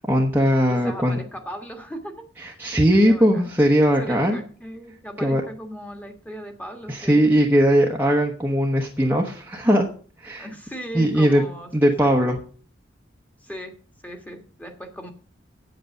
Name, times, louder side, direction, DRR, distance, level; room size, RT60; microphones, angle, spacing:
voice 1, 0.1-1.2 2.4-4.4 5.2-5.4 6.9-9.9 10.2-10.5 10.9-11.4 11.7-12.4, equal, 10° right, -1 dB, 1.0 m, -19 dB
voice 2, 0.7-2.1 2.4-2.6 2.9-3.5 4.0-7.4 10.4-12.1 13.4-13.7 14.0-15.1, equal, 10° left, 4 dB, 1.5 m, -38 dB
8.5 x 8.0 x 6.4 m, 0.43 s
head